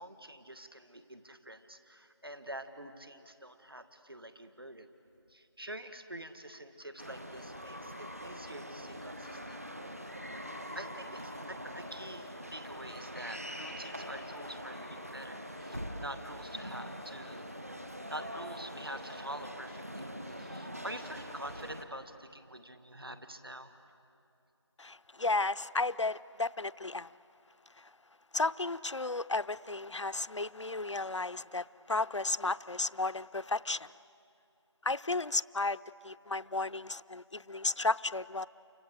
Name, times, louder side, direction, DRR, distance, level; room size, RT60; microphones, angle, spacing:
voice 1, 0.0-4.9 5.3-9.6 10.7-17.8 18.1-23.7, right 1 dB, 55° right, 9 dB, 1.7 m, -46 dB
sound 1, 7.0-21.8, equal, 30° right, 1.2 m, -43 dB
voice 2, 24.8-27.1 27.8-27.9 28.3-33.9 34.8-35.8 36.0-38.5, left 3 dB, 80° left, 15 dB, 0.6 m, -33 dB
29.5 x 25.0 x 7.9 m, 2.6 s
figure-of-eight pair, 180°, 15 cm